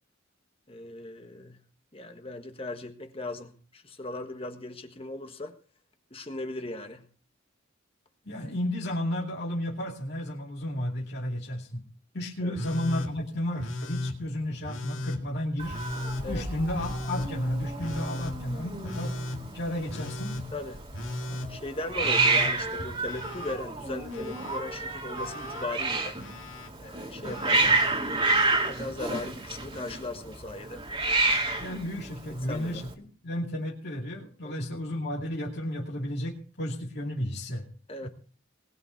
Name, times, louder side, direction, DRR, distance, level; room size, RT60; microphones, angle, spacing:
voice 1, 0.7-1.6 1.9-5.5 6.1-7.1 12.4-12.5 16.2-16.5 20.5-20.8 21.5-26.2 26.8-27.9 28.7-30.9 32.5-32.8 34.4-34.6 37.9-38.1, left 2 dB, 30° left, 6 dB, 1.5 m, -38 dB
voice 2, 8.2-11.8 12.1-15.8 16.3-19.2 19.5-20.4 31.6-37.7 38.0-38.1, left 1 dB, 55° left, -3 dB, 2.6 m, -32 dB
Telephone, 12.6-13.1 13.6-14.2 14.6-15.2 15.7-16.3 16.7-17.3 17.8-18.3 18.8-19.4 19.9-20.4 20.9-21.5 22.0-23.6 23.8-24.6 25.1-25.6 26.2-26.7 27.2-27.7 28.9-29.0, left 1 dB, 80° left, 2.1 m, -35 dB
Hiss, 15.6-32.9, right 3 dB, 30° right, 2.4 m, -30 dB
20.5 x 9.0 x 4.5 m, 0.39 s
head